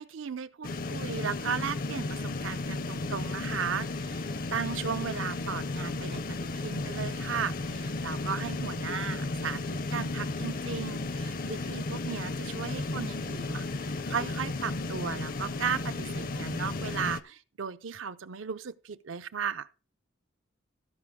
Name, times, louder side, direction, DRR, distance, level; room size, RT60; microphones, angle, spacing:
voice 1, 0.0-19.7, right 6 dB, 75° right, 0.6 m, -36 dB
sound 1, 0.6-17.2, left 2 dB, 45° left, 0.6 m, -34 dB
15.5 x 5.3 x 3.6 m
head